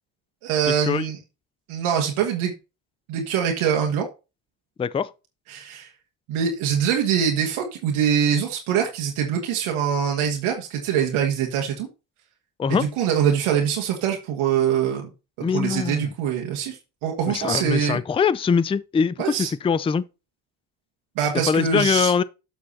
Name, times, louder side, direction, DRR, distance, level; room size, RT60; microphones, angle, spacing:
voice 1, 0.4-1.2 1.7-2.5 3.1-4.1 5.5-5.9 6.3-11.9 12.7-15.1 15.4-18.0 19.2-19.5 21.2-22.1, right 8 dB, 75° right, 1.8 m, -24 dB
voice 2, 4.8-5.1 12.6-12.9 15.4-16.1 17.3-20.0 21.5-22.2, left 6 dB, 10° left, 0.4 m, -22 dB
7.4 x 6.3 x 4.2 m
supercardioid pair, 70°, 50 cm